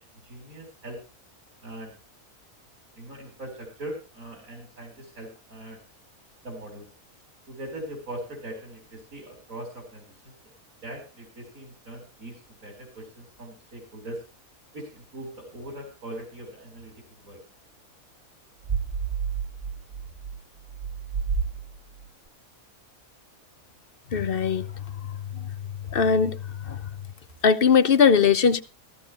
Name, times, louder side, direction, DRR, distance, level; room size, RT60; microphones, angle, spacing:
voice 1, 0.2-1.0 1.6-1.9 3.0-5.8 6.4-6.9 7.5-10.3 10.8-14.2 14.7-16.9 17.2-17.4, right 1 dB, 75° right, 4.9 m, -40 dB
sound 1, 18.6-22.1, right 6 dB, 25° right, 0.9 m, -31 dB
voice 2, 24.1-24.7 25.3-25.5 25.9-26.4 26.6-26.8 27.4-28.6, left 6 dB, 45° left, 1.0 m, -20 dB
15.5 x 15.5 x 3.0 m
omnidirectional pair, 1.5 m